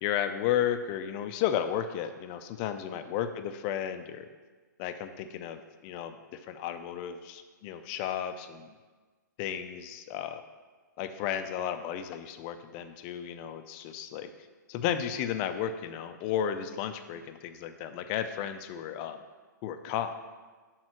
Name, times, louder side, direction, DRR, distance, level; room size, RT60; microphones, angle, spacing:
voice 1, 0.0-4.3 4.8-5.6 5.8-6.2 6.5-8.7 9.4-10.4 11.0-14.3 14.7-19.2 19.6-20.2, left 9 dB, 35° left, 9 dB, 0.5 m, -33 dB
6.2 x 3.9 x 6.1 m, 1.4 s
hypercardioid pair, 130°, 11 cm